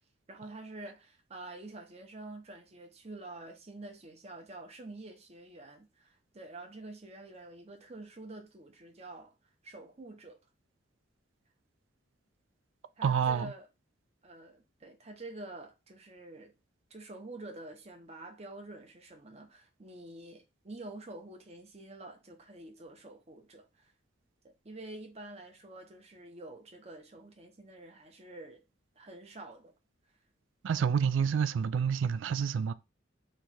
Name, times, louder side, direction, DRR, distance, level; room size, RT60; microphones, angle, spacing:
voice 1, 0.3-9.3 9.6-10.4 13.0-13.7 14.2-16.5 16.9-23.9 24.6-28.6 29.0-29.7, right 2 dB, 35° right, 0.8 m, -47 dB
voice 2, 13.0-13.5 30.6-32.7, right 7 dB, 80° right, 0.3 m, -28 dB
3.2 x 2.3 x 4.1 m
head